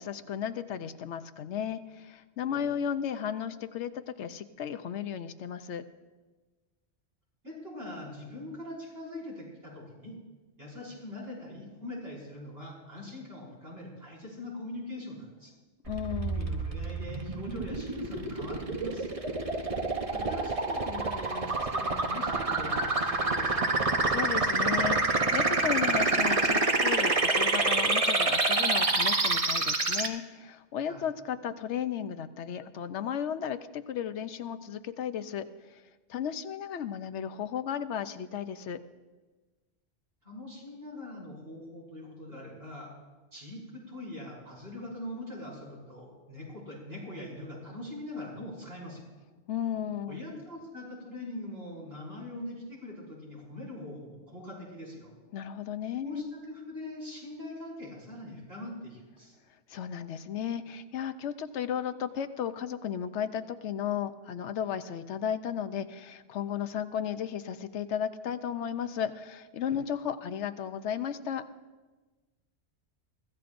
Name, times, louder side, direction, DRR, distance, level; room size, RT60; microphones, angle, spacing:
voice 1, 0.0-5.8 15.9-16.5 24.1-35.8 36.1-38.8 49.5-50.2 55.3-56.3 59.7-71.5, left 8 dB, 80° left, 11 dB, 1.0 m, -34 dB
voice 2, 7.4-10.1 10.6-15.5 16.2-19.1 20.1-23.6 30.8-31.1 40.2-42.9 43.3-49.0 50.1-55.1 56.0-59.4 69.7-69.8, left 1 dB, 60° right, -5 dB, 5.7 m, -42 dB
sound 1, 15.9-30.1, right 3 dB, 30° right, 1.0 m, -27 dB
23.5 x 15.0 x 2.6 m, 1.2 s
omnidirectional pair, 1.2 m